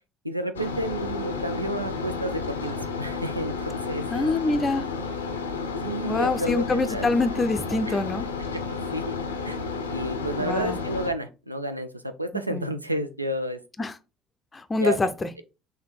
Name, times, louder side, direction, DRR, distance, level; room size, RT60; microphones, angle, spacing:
voice 1, 0.2-4.6 5.8-7.1 7.9-8.0 8.5-8.6 8.9-9.1 9.4-9.6 9.9-13.6 14.7-15.0, right 1 dB, 90° right, 0.3 m, -31 dB
sound 1, 0.5-11.1, left 4 dB, 80° left, 0.5 m, -32 dB
voice 2, 4.1-4.9 6.0-8.3 10.4-10.8 12.5-12.7 13.8-14.0 14.5-15.3, left 3 dB, 25° left, 0.5 m, -25 dB
4.1 x 2.7 x 4.4 m
figure-of-eight pair, 50°, 0 cm